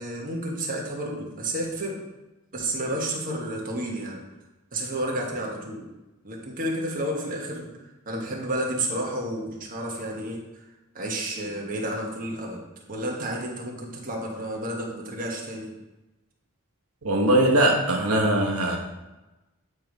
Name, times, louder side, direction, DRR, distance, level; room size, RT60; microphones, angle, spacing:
voice 1, 0.0-2.0 2.5-4.2 4.7-5.9 6.2-7.7 8.0-10.4 10.9-12.6 12.9-15.7, right 1 dB, 40° right, -1 dB, 1.3 m, -31 dB
voice 2, 17.0-18.8, right 1 dB, 80° right, -1 dB, 1.0 m, -21 dB
9.4 x 3.2 x 5.2 m, 1.0 s
head